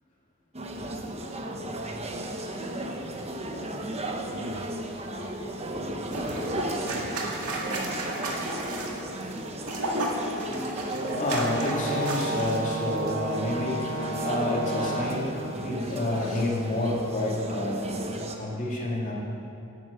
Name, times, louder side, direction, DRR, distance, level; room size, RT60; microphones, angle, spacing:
sound 1, 0.5-18.4, right 1 dB, 30° right, 1.0 m, -34 dB
sound 2, 6.1-12.6 12.9-13.1, right 1 dB, 85° right, 2.0 m, -34 dB
voice 1, 10.8-17.8 18.4-19.1, left 1 dB, 35° left, -4 dB, 2.7 m, -29 dB
Brass instrument, 11.0-15.4, right 2 dB, 70° right, 2.0 m, -33 dB
11.0 x 9.5 x 8.1 m, 2.7 s
head